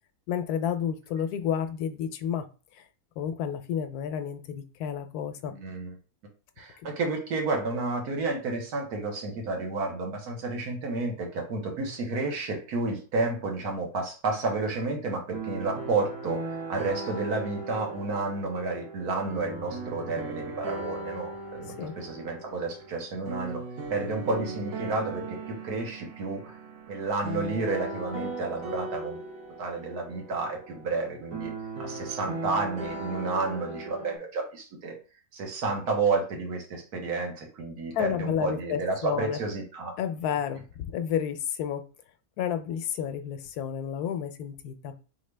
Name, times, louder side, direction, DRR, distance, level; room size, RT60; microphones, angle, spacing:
voice 1, 0.3-2.4 2.7-2.8 3.2-5.5 21.8-21.9 37.9-39.4 40.0-40.6 40.9-41.8 42.4-44.9, left 8 dB, 90° left, 9 dB, 1.1 m, -30 dB
voice 2, 5.5-6.0 6.6-23.6 23.9-26.6 26.9-29.2 29.6-31.5 31.8-35.0 35.3-40.0, right 3 dB, 85° right, 1 dB, 1.7 m, -31 dB
sound 1, 15.3-34.2, right 3 dB, 70° right, 1.5 m, -38 dB
3.9 x 3.5 x 3.3 m, 0.36 s
omnidirectional pair, 1.6 m